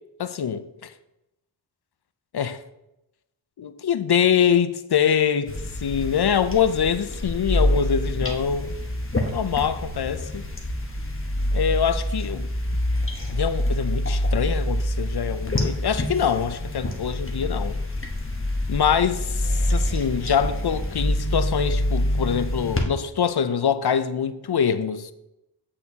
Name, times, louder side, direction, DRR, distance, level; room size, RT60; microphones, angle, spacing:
voice 1, 0.2-0.9 2.3-2.6 3.6-5.5 5.8-8.8 9.3-10.4 11.5-12.5 13.3-17.8 18.7-25.1, left 7 dB, 65° left, 0.5 m, -24 dB
sound 1, 5.5-22.8, left 1 dB, 30° left, 1.0 m, -26 dB
8.4 x 6.6 x 2.8 m
wide cardioid pair, 60°, 43 cm